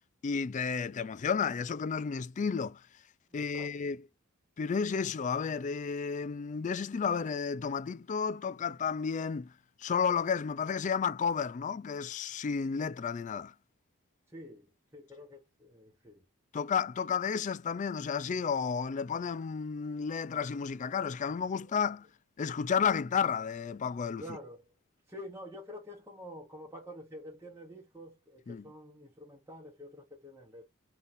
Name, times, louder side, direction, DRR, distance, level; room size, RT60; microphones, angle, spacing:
voice 1, 0.2-2.8 3.3-4.0 4.6-9.5 9.8-13.5 16.5-22.1 22.4-24.2 28.5-28.6, left 6 dB, 35° left, 0.3 m, -32 dB
voice 2, 3.3-3.9 14.3-16.2 21.7-21.8 24.2-24.7 25.1-30.7, equal, 10° right, 1.0 m, -48 dB
3.9 x 3.4 x 2.6 m
head